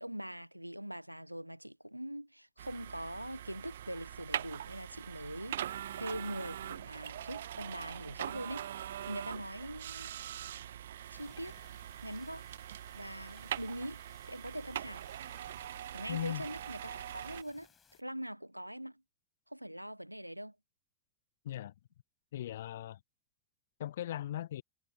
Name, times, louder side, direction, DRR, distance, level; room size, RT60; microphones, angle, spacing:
voice 1, 0.0-10.1 11.1-11.6 12.0-12.4 12.9-15.0 15.9-17.7 18.0-19.0 19.5-20.5, equal, 90° right, 1.5 m, -43 dB
sound 1, 2.6-17.4, right 11 dB, 60° right, 0.8 m, -42 dB
sound 2, 11.1-18.0, left 7 dB, 20° left, 6.6 m, -65 dB
voice 2, 16.1-16.4 21.4-21.7 22.3-23.0 23.8-24.6, left 12 dB, 60° left, 1.3 m, -38 dB
figure-of-eight pair, 90°, 0 cm